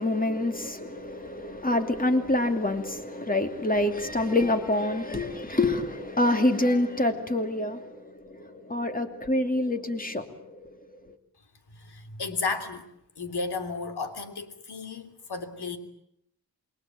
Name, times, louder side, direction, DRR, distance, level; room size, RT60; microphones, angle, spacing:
voice 1, 0.0-10.8, left 1 dB, 20° left, 2.7 m, -27 dB
voice 2, 11.7-12.9 13.2-15.8, left 4 dB, 75° left, 3.3 m, -33 dB
28.0 x 22.0 x 9.2 m
wide cardioid pair, 160°, 39 cm